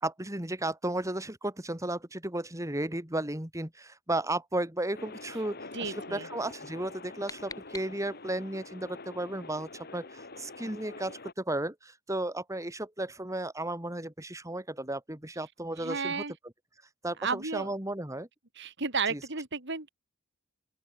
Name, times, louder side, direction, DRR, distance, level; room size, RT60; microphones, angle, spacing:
voice 1, 0.0-16.2 17.0-18.3 19.1-19.2, right 1 dB, 15° right, 2.9 m, -34 dB
sound 1, 4.9-11.3, left 3 dB, 50° left, 3.4 m, -46 dB
voice 2, 5.7-6.3 15.8-16.3 17.2-17.7 18.6-19.9, right 4 dB, 60° right, 3.6 m, -33 dB
sound 2, 6.8-8.4, left 4 dB, 15° left, 5.2 m, -47 dB
open air
head